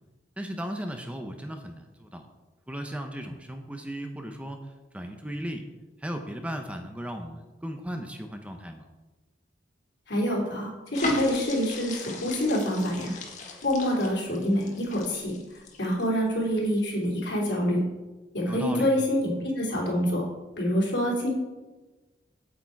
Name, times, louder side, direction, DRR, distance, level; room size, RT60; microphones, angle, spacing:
voice 1, 0.4-2.3 2.7-4.6 4.9-5.7 6.0-8.9 18.5-18.9, equal, 5° right, 5 dB, 0.7 m, -36 dB
voice 2, 10.1-13.1 13.6-15.3 15.8-17.8 18.3-20.2 20.6-21.3, equal, 75° left, -3 dB, 3.3 m, -26 dB
sound 1, 10.9-16.3 16.7-16.9, left 2 dB, 40° left, 1.5 m, -36 dB
8.6 x 8.5 x 4.6 m, 1.2 s
head